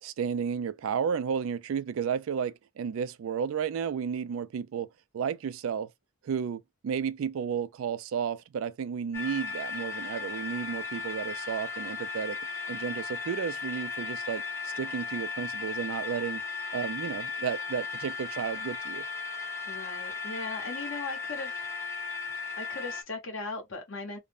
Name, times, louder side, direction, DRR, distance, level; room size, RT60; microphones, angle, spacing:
voice 1, 0.0-4.9 5.1-5.9 6.2-12.4 12.7-16.4 16.7-19.0, right 7 dB, 70° right, 0.3 m, -32 dB
sound 1, 9.1-23.0, left 5 dB, 15° left, 0.5 m, -36 dB
voice 2, 19.7-21.6 22.6-24.2, left 3 dB, 65° left, 1.0 m, -38 dB
2.5 x 2.1 x 3.3 m
head